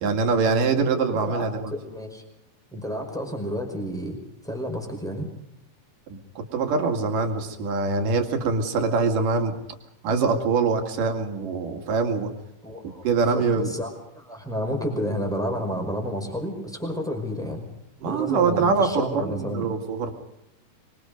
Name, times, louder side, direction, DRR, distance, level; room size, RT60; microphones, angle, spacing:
voice 1, 0.0-1.7 6.1-9.5 10.0-12.3 13.0-13.7 18.0-20.1, right 4 dB, 70° right, 5 dB, 3.8 m, -24 dB
voice 2, 1.0-2.2 2.7-4.2 4.4-5.3 12.6-13.9 14.1-17.6 18.0-19.7, equal, ahead, 3 dB, 5.0 m, -31 dB
25.0 x 23.5 x 5.2 m, 0.86 s
omnidirectional pair, 3.9 m